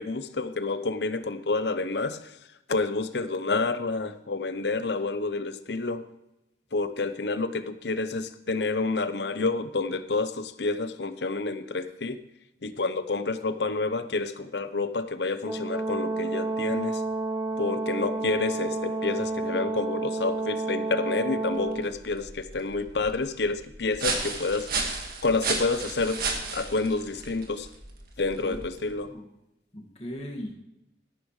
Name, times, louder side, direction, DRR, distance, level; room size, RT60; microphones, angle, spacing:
voice 1, 0.0-2.3 2.7-6.1 6.7-12.2 12.6-17.0 17.6-24.7 25.2-26.2 26.5-27.7 28.2-29.1, left 3 dB, 80° left, 12 dB, 0.8 m, -29 dB
Brass instrument, 15.5-21.8, right 2 dB, 15° right, 0.9 m, -30 dB
sound 1, 21.6-29.0, right 4 dB, 55° right, 1.9 m, -34 dB
voice 2, 29.7-30.5, equal, 35° left, 0 dB, 2.0 m, -38 dB
13.5 x 11.5 x 3.2 m, 0.89 s
head